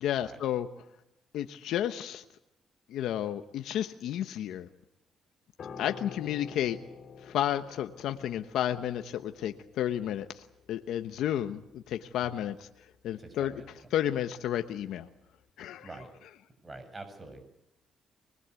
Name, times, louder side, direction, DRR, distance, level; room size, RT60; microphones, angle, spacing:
voice 1, 0.0-0.7 1.3-2.2 2.9-4.7 5.8-6.8 7.2-12.7 13.0-13.5 13.9-15.1 15.6-15.9, left 11 dB, 80° left, 8 dB, 1.1 m, -32 dB
Piano, 5.6-15.0 15.2-15.5, left 5 dB, 55° left, 3.5 m, -50 dB
voice 2, 13.2-13.7 15.8-16.1 16.6-17.4, right 2 dB, 25° right, 8 dB, 7.4 m, -45 dB
25.0 x 21.0 x 8.3 m, 0.87 s
cardioid pair, 90°, 0 cm